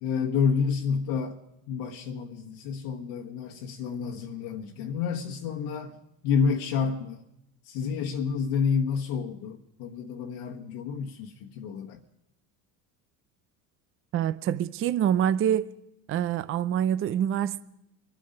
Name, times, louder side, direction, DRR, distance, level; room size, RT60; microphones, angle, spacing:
voice 1, 0.0-1.4 1.7-5.9 6.2-7.2 7.6-12.0, left 6 dB, 65° left, 1.3 m, -29 dB
voice 2, 14.1-15.7 16.1-17.6, right 10 dB, 30° right, 0.6 m, -26 dB
25.0 x 9.2 x 5.3 m
supercardioid pair, 95°, 42 cm